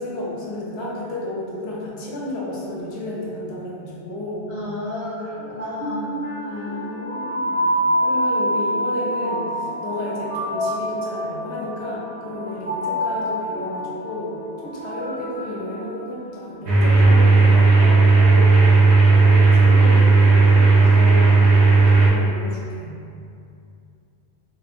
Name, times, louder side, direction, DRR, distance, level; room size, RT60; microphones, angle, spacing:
voice 1, 0.0-4.6 6.4-7.7 8.0-18.5 19.1-21.4 21.8-22.9, left 1 dB, 85° left, -5 dB, 0.9 m, -32 dB
voice 2, 4.5-6.7, left 1 dB, 45° left, -10 dB, 0.9 m, -32 dB
sound 1, 5.4-16.5, equal, 40° right, 0.6 m, -27 dB
sound 2, 16.7-22.1, right 3 dB, 75° right, 0.9 m, -13 dB
2.9 x 2.1 x 2.4 m, 2.5 s
omnidirectional pair, 1.1 m